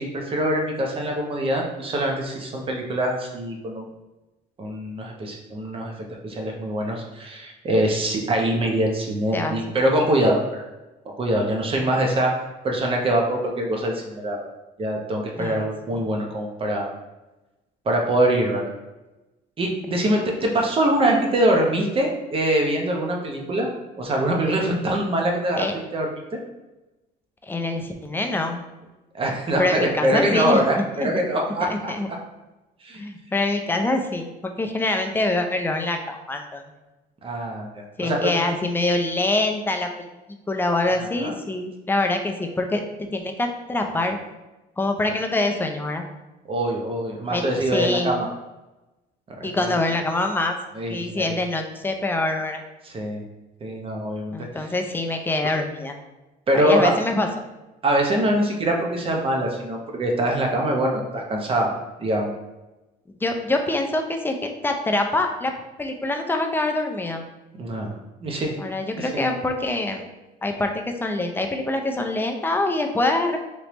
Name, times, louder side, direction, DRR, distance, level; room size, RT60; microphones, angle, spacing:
voice 1, 0.0-3.9 4.6-5.9 6.2-10.6 11.2-12.3 12.6-14.4 14.8-16.9 17.9-18.7 19.6-23.7 24.0-25.7 25.9-26.4 29.1-31.9 32.8-33.0 37.2-38.4 41.1-41.3 45.0-45.1 46.5-48.3 49.4-49.8 50.7-51.4 52.8-53.2 53.6-54.7 56.5-56.9 57.8-61.7 62.0-62.3 67.6-67.9 68.2-68.5 69.0-69.3, right 1 dB, 35° right, 1 dB, 0.7 m, -23 dB
voice 2, 15.4-15.7 15.9-16.0 25.5-25.7 27.4-28.6 29.6-31.1 31.6-32.1 33.0-36.6 38.0-39.9 40.5-42.8 43.1-44.2 44.8-46.1 47.3-47.4 47.7-48.2 49.4-50.6 50.9-52.6 54.3-56.0 56.5-57.3 63.1-65.5 65.8-67.2 68.6-70.0 70.4-70.7 71.0-73.4, left 2 dB, 10° left, 4 dB, 0.4 m, -25 dB
3.3 x 3.0 x 3.0 m, 1.0 s
cardioid pair, 110°, 17 cm